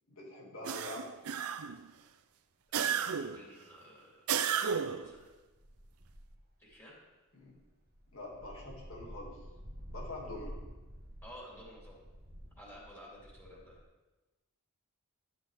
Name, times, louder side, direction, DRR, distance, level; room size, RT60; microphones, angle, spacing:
voice 1, 0.1-1.1 7.3-7.5 8.1-9.4 9.9-10.6, left 2 dB, 65° left, -3 dB, 2.4 m, -45 dB
sound 1, 0.6-1.9 2.7-3.5 4.3-5.1, right 8 dB, 80° right, 0.5 m, -33 dB
sound 2, 1.2-1.3 2.7-3.0 4.9-6.7 7.4-13.8, equal, 45° right, 1.5 m, -50 dB
voice 2, 2.7-5.3 6.6-6.9 11.2-12.0 12.6-13.8, equal, 10° left, -6 dB, 3.4 m, -52 dB
12.0 x 8.0 x 3.5 m, 1.1 s
head